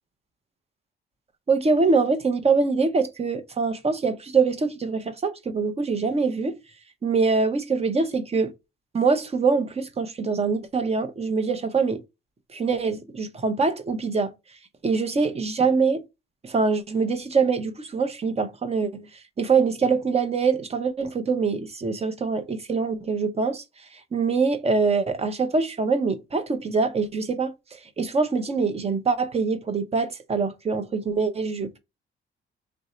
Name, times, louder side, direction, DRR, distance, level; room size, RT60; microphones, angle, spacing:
voice 1, 1.5-6.6 7.0-8.5 8.9-12.0 12.5-14.3 14.8-16.0 16.4-19.0 19.4-23.6 24.1-27.5 28.0-31.8, right 4 dB, 30° right, 0.7 m, -24 dB
3.3 x 2.6 x 4.1 m
cardioid pair, 90°, 20 cm